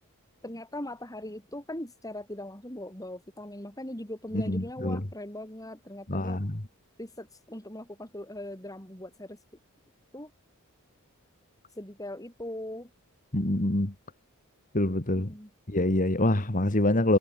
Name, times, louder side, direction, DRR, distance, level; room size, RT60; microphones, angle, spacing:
voice 1, 0.4-6.4 7.0-9.4 10.1-10.3 11.8-12.9 15.2-15.5, left 1 dB, 15° left, 6.1 m, -40 dB
voice 2, 4.5-5.0 6.1-6.5 13.3-13.9 14.7-15.3 15.7-17.2, left 1 dB, 35° left, 2.0 m, -25 dB
head